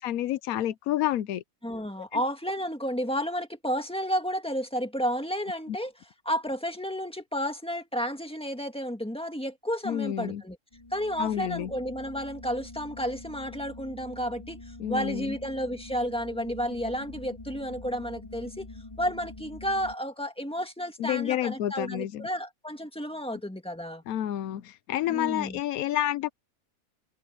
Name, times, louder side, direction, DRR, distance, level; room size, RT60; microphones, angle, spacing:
voice 1, 0.0-1.4 2.1-2.2 5.7-5.8 9.8-10.4 11.2-11.7 14.8-15.3 21.0-22.3 24.1-26.3, left 12 dB, 80° left, 1.1 m, -29 dB
voice 2, 1.6-5.9 6.2-10.6 10.9-18.7 19.0-24.0 25.1-25.6, equal, 5° left, 1.8 m, -32 dB
sound 1, 10.7-19.9, left 2 dB, 25° left, 1.9 m, -45 dB
omnidirectional pair, 1.5 m